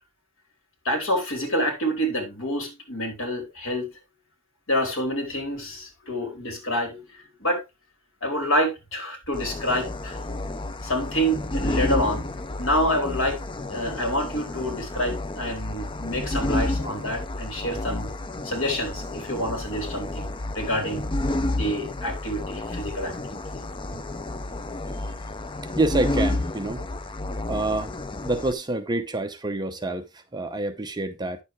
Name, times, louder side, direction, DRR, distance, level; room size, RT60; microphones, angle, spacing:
voice 1, 0.8-3.9 4.7-7.6 8.2-10.2 10.8-12.2 12.6-13.4 13.7-18.1 18.4-20.3 20.5-21.0 21.6-23.4, equal, 65° left, 3.9 m, -27 dB
sound 1, 9.3-28.5, left 2 dB, 25° left, 0.5 m, -30 dB
voice 2, 25.8-26.8 27.5-27.9 28.2-31.4, right 2 dB, 20° right, 0.8 m, -27 dB
9.9 x 7.1 x 3.3 m
head